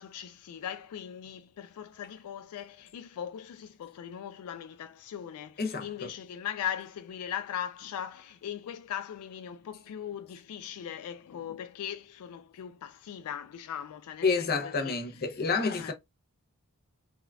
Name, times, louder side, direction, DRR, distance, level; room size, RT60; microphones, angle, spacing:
voice 1, 0.0-15.0 15.8-15.9, left 9 dB, 80° left, 0.3 m, -39 dB
voice 2, 5.6-6.1 14.2-15.9, left 4 dB, 45° left, 0.6 m, -29 dB
3.5 x 2.3 x 2.2 m
head